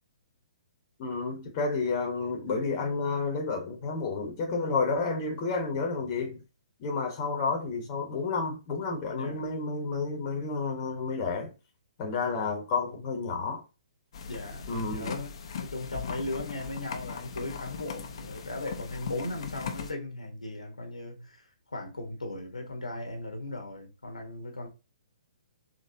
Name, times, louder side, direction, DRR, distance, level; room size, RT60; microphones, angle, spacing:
voice 1, 1.0-6.4 6.8-11.5 12.0-13.6 14.7-15.1, left 4 dB, 30° left, 1.0 m, -30 dB
voice 2, 9.1-9.6 14.3-21.4 21.7-24.7, left 2 dB, 70° left, 1.1 m, -37 dB
sound 1, 14.1-19.9, left 6 dB, 45° left, 0.6 m, -39 dB
4.2 x 2.9 x 2.7 m
figure-of-eight pair, 125°, 4 cm